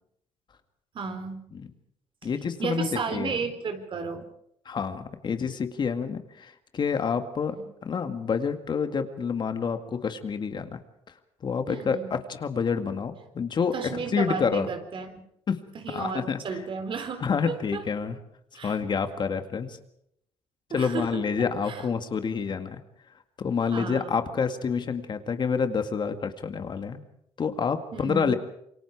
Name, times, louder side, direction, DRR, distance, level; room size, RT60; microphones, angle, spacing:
voice 1, 0.9-1.4 2.6-4.3 7.5-7.6 11.7-12.1 13.7-15.2 15.7-17.8 18.5-18.8 20.7-21.8 23.7-24.2 27.9-28.4, right 5 dB, 50° right, 8 dB, 3.9 m, -33 dB
voice 2, 2.2-3.4 4.7-7.6 7.8-10.8 11.4-14.7 15.5-15.6 15.9-16.6 17.2-18.2 18.6-19.8 20.7-22.8 23.4-27.0 27.4-28.3, left 6 dB, 40° left, 8 dB, 2.0 m, -28 dB
27.5 x 23.5 x 4.8 m, 0.74 s
cardioid pair, 95°, 11 cm